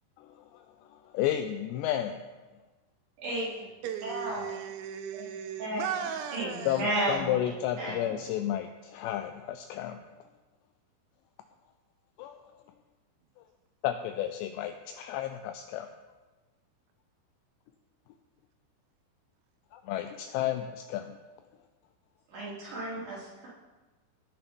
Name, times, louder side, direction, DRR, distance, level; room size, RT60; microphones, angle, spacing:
voice 1, 1.1-2.2 6.7-10.0 12.2-12.4 13.8-15.9 19.7-21.2, left 12 dB, 85° left, 2.5 m, -32 dB
voice 2, 3.2-3.5 4.0-4.4 5.1-5.2 5.6-5.8 6.3-7.3 7.8-8.1 22.3-23.5, right 1 dB, 45° right, 4.5 m, -33 dB
voice 3, 3.8-7.1, right 8 dB, 85° right, 2.9 m, -37 dB
18.0 x 6.0 x 5.2 m
omnidirectional pair, 5.4 m